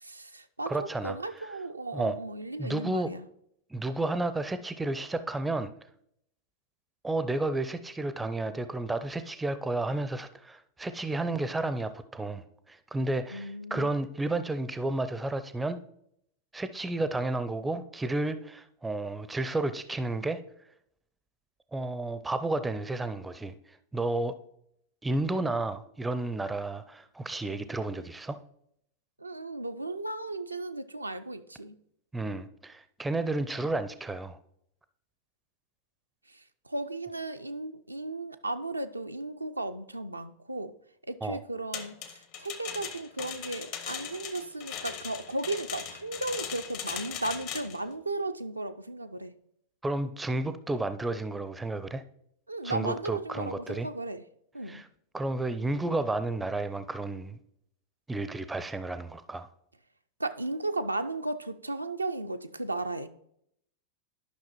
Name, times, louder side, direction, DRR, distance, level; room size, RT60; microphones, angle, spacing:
voice 1, 0.0-3.3 13.3-13.9 29.2-31.8 36.3-40.8 41.1-49.3 52.5-54.2 54.5-54.8 60.2-63.1, right 2 dB, 85° right, 8 dB, 0.4 m, -35 dB
voice 2, 0.7-1.2 1.9-2.2 2.6-3.1 3.7-5.7 7.0-15.8 16.5-20.4 21.7-23.5 23.9-24.3 25.0-28.4 32.1-34.4 41.2-41.4 49.8-52.0 52.6-53.9 54.7-54.8 55.1-57.4 58.1-59.5, right 2 dB, 10° right, 12 dB, 0.4 m, -32 dB
sound 1, 41.7-47.8, left 8 dB, 45° left, 0.8 m, -39 dB
11.5 x 5.7 x 3.0 m, 0.73 s
figure-of-eight pair, 90°, 0 cm